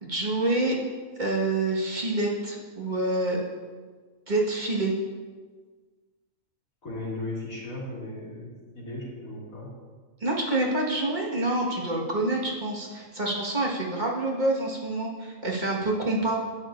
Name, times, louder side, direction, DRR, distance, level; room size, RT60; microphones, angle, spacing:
voice 1, 0.0-0.8 1.2-3.4 4.3-4.9 10.2-16.4, right 2 dB, 35° right, -4 dB, 1.7 m, -27 dB
voice 2, 6.8-9.7, left 2 dB, 85° left, -5 dB, 2.6 m, -36 dB
11.5 x 9.1 x 2.6 m, 1.5 s
omnidirectional pair, 1.4 m